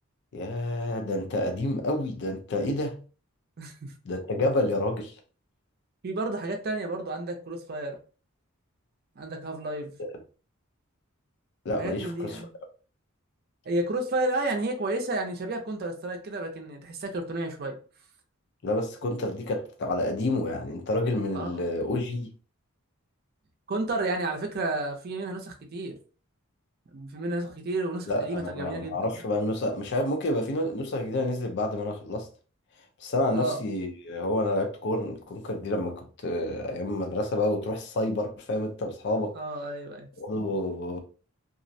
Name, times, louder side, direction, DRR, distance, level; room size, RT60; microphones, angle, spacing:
voice 1, 0.3-3.0 4.1-5.1 10.0-10.2 11.7-12.4 18.6-22.3 28.1-32.3 33.0-39.4 40.2-41.0, left 1 dB, 50° left, 0.4 m, -29 dB
voice 2, 3.6-3.9 6.0-8.0 9.2-9.9 11.8-12.5 13.7-17.8 21.3-21.7 23.7-26.0 26.9-29.0 33.3-33.6 39.3-40.1, right 2 dB, 45° right, 0.5 m, -31 dB
2.4 x 2.0 x 2.6 m
head